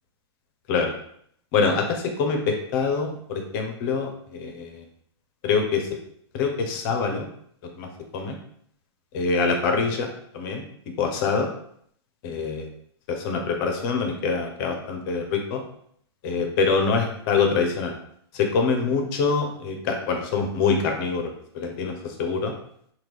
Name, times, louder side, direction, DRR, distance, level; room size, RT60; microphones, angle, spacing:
voice 1, 1.5-4.8 5.4-5.9 6.3-7.3 7.8-8.3 9.1-10.1 10.3-10.6 11.0-11.5 12.2-12.7 13.1-15.6 16.2-17.9 18.3-22.5, left 5 dB, 50° left, 3 dB, 0.7 m, -25 dB
2.9 x 2.3 x 3.4 m, 0.66 s
hypercardioid pair, 105°, 14 cm